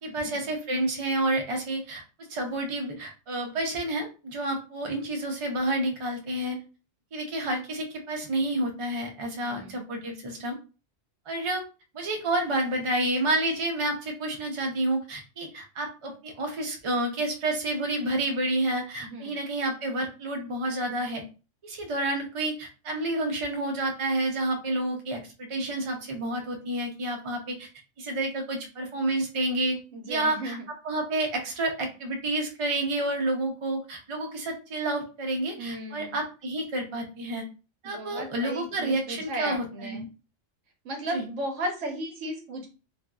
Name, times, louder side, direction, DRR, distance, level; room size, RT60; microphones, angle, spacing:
voice 1, 0.0-2.0 2.3-6.6 7.1-10.6 11.3-11.6 11.9-21.2 21.6-27.7 28.0-29.8 30.1-37.4 37.8-40.1 41.1-41.2, right 1 dB, 50° right, 2 dB, 0.4 m, -29 dB
voice 2, 9.3-9.8 19.0-19.3 29.9-30.6 35.6-36.2 37.8-40.0 40.8-42.7, right 1 dB, 70° right, 3 dB, 1.0 m, -35 dB
2.5 x 2.5 x 2.2 m, 0.32 s
omnidirectional pair, 1.3 m